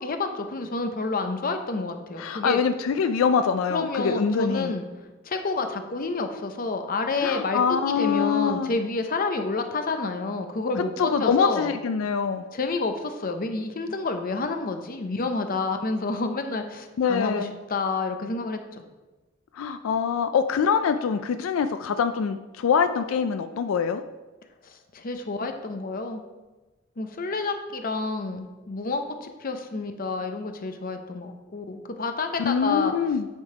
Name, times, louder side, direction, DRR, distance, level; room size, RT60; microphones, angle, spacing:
voice 1, 0.0-2.6 3.7-4.9 5.2-11.7 12.5-18.8 24.6-26.2 27.0-32.9, left 3 dB, 45° left, 6 dB, 0.7 m, -29 dB
voice 2, 2.2-4.7 7.2-8.7 11.0-12.4 17.0-17.5 19.5-24.0 32.4-33.3, left 6 dB, 90° left, 9 dB, 0.4 m, -24 dB
9.0 x 3.7 x 4.8 m, 1.2 s
head